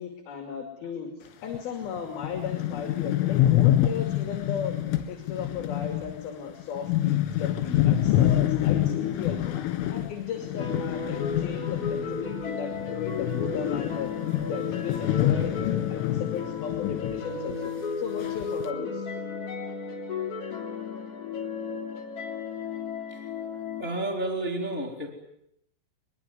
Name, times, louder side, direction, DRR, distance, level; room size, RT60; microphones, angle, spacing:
voice 1, 0.0-4.7 5.1-9.6 9.9-19.1, left 7 dB, 55° left, 5 dB, 3.9 m, -36 dB
sound 1, 1.5-1.6 2.0-12.5 12.7-17.2 17.5-17.6 18.2-18.7, left 12 dB, 75° left, 4.4 m, -26 dB
sound 2, 10.6-23.8, left 5 dB, 35° left, 3.4 m, -34 dB
voice 2, 23.8-25.1, right 2 dB, 15° left, 3 dB, 2.3 m, -31 dB
23.5 x 22.0 x 9.5 m, 0.79 s
omnidirectional pair, 6.0 m